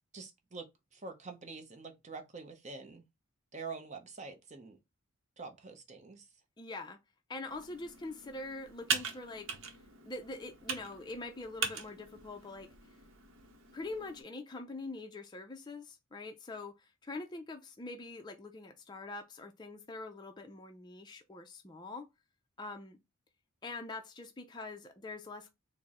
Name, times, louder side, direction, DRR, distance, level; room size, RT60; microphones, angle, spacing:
voice 1, 0.1-3.0 3.5-4.8 5.4-6.3, right 4 dB, 30° right, 0.6 m, -46 dB
voice 2, 6.6-7.0 7.3-9.6 10.0-12.7 13.7-22.1 22.6-23.0 23.6-25.5, left 2 dB, 20° left, 0.4 m, -44 dB
Computer keyboard, 7.5-14.2, right 5 dB, 60° right, 0.8 m, -41 dB
4.3 x 2.0 x 3.6 m
head